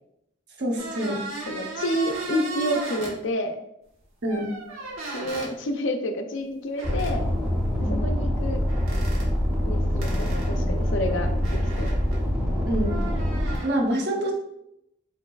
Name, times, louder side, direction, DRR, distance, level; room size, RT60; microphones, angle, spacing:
voice 1, 0.6-1.2 4.2-4.5 7.8-8.0 12.6-13.0 13.6-14.3, right 1 dB, 55° right, 0 dB, 0.9 m, -26 dB
sound 1, 0.8-3.1 4.2-5.5 6.8-7.2 8.7-9.3 10.0-12.3 12.8-13.7, right 3 dB, 90° right, 1.3 m, -36 dB
voice 2, 1.5-3.6 5.1-7.2 7.9-8.6 9.6-11.9, left 1 dB, 70° left, 7 dB, 0.5 m, -29 dB
sound 2, 6.8-13.6, equal, 5° right, 0.8 m, -25 dB
4.7 x 4.4 x 2.4 m, 0.79 s
head